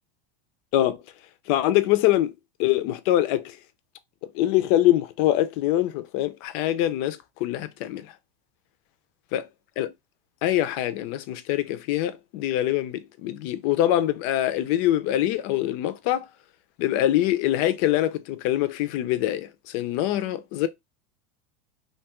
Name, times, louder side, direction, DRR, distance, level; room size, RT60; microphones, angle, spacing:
voice 1, 1.5-2.3 2.6-3.6 4.3-8.1 9.3-9.4 9.8-9.9 10.4-16.3 16.8-20.7, left 13 dB, 50° left, 0.4 m, -24 dB
2.7 x 2.3 x 2.9 m
supercardioid pair, 150°, 20 cm